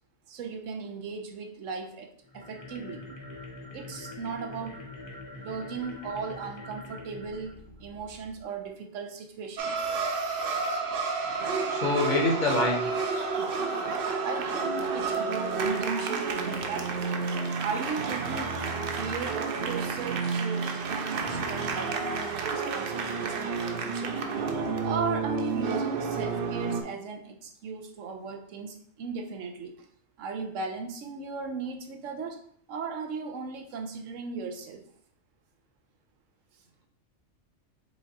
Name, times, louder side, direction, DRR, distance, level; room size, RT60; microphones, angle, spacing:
voice 1, 0.3-3.0 3.7-4.8 5.3-10.8 14.2-16.9 17.6-18.5 18.9-24.2 24.8-29.8 30.2-32.4 32.7-34.8, right 5 dB, 85° right, 4 dB, 1.0 m, -37 dB
sound 1, 2.2-8.5, left 2 dB, 20° left, 0.7 m, -44 dB
sound 2, 9.6-26.8, right 4 dB, 60° right, 0.7 m, -30 dB
voice 2, 11.7-12.9, left 2 dB, 45° left, 0 dB, 0.9 m, -25 dB
5.1 x 2.4 x 4.0 m, 0.63 s
omnidirectional pair, 1.3 m